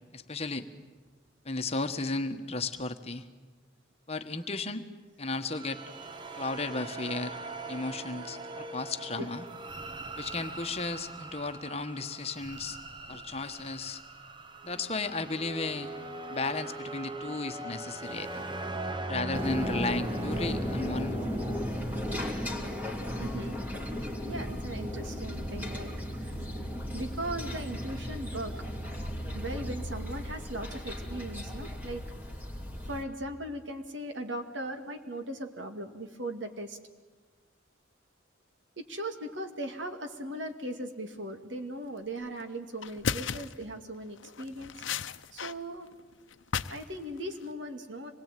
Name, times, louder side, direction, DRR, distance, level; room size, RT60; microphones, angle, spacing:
voice 1, 0.1-0.7 1.4-3.3 4.1-4.8 5.2-5.8 6.3-7.4 7.7-9.5 10.2-12.8 13.1-14.0 14.6-15.9 16.3-18.4 19.1-21.2, left 3 dB, 30° left, 8 dB, 1.3 m, -34 dB
sound 1, 5.5-22.5, right 2 dB, 25° right, 1.0 m, -40 dB
sound 2, 19.3-33.0, equal, 10° right, 2.8 m, -35 dB
voice 2, 23.2-23.6 24.2-25.9 26.2-26.5 26.9-28.6 29.3-32.0 32.8-36.8 38.8-44.7 45.3-45.9 46.7-48.1, right 1 dB, 75° right, 6 dB, 2.4 m, -38 dB
sound 3, 42.3-42.4 42.8-43.6 44.2-45.5 45.8-46.9 47.2-47.5, left 6 dB, 80° left, 0.8 m, -35 dB
26.0 x 21.0 x 9.2 m, 1.3 s
head